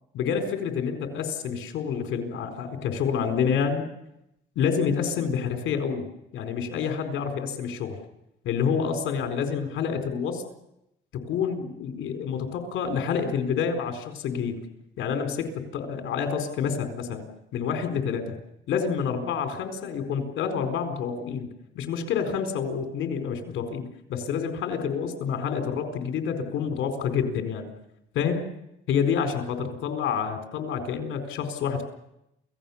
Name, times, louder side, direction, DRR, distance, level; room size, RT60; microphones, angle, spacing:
voice 1, 0.1-3.8 4.6-6.1 6.3-8.0 8.4-10.4 11.1-14.6 15.0-17.2 17.5-18.4 18.7-21.5 21.7-27.7 28.1-28.5 28.9-31.8, left 6 dB, 80° left, 5 dB, 4.3 m, -28 dB
28.5 x 17.0 x 7.2 m, 0.85 s
cardioid pair, 90°, 20 cm